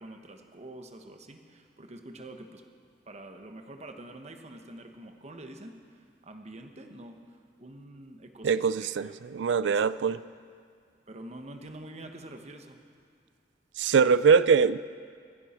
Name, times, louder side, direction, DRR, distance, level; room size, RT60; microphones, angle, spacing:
voice 1, 0.0-2.6 3.1-9.1 9.6-9.9 11.1-12.8, right 1 dB, 40° right, 5 dB, 1.1 m, -46 dB
voice 2, 8.4-10.2 13.8-14.8, right 6 dB, 90° right, 17 dB, 0.4 m, -23 dB
25.5 x 11.0 x 4.4 m, 2.1 s
head